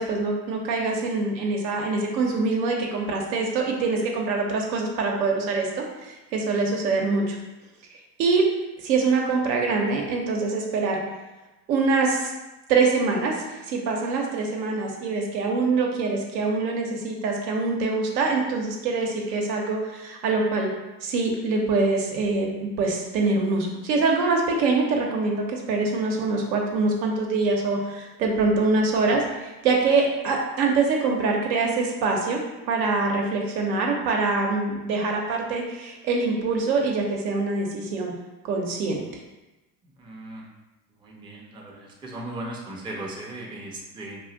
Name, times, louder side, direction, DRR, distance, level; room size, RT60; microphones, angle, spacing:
voice 1, 0.0-7.4 8.2-8.4 8.8-11.0 11.7-12.3 12.7-13.3 13.7-20.7 21.0-32.4 32.7-38.1 38.5-39.1, right 3 dB, 80° right, 0 dB, 0.8 m, -24 dB
voice 2, 40.0-40.4 41.0-44.2, right 1 dB, 10° right, -2 dB, 0.4 m, -37 dB
2.5 x 2.0 x 3.7 m, 1.0 s
hypercardioid pair, 80°, 50 cm